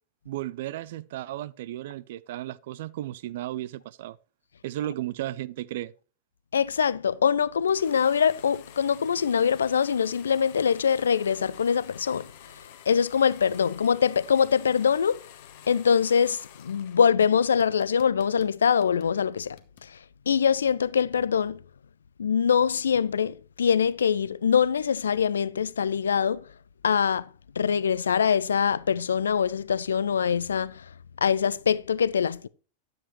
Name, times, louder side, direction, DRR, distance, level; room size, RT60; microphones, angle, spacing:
voice 1, 0.3-4.2 4.6-5.9, right 14 dB, 55° right, 0.4 m, -34 dB
voice 2, 6.5-15.2 15.7-20.0 20.3-21.6 22.2-26.5 26.8-27.3 27.6-30.9 31.2-32.5, left 7 dB, 70° left, 0.4 m, -24 dB
sound 1, 7.7-17.1 17.4-19.9, left 11 dB, 50° left, 1.0 m, -50 dB
9.9 x 7.7 x 3.1 m
figure-of-eight pair, 90°, 0 cm